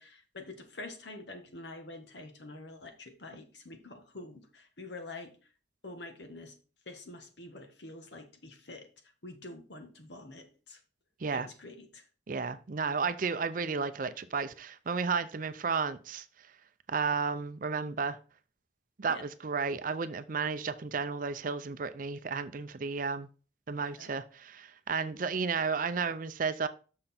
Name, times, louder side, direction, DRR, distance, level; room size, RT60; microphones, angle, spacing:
voice 1, 0.0-5.4 5.8-6.6 6.8-10.8 11.3-12.1 19.1-19.2 23.8-24.2, left 2 dB, 65° left, 1.5 m, -47 dB
voice 2, 12.3-16.2 16.9-18.2 19.0-23.3 23.7-26.7, right 5 dB, 45° right, 0.5 m, -33 dB
6.5 x 6.0 x 4.3 m
head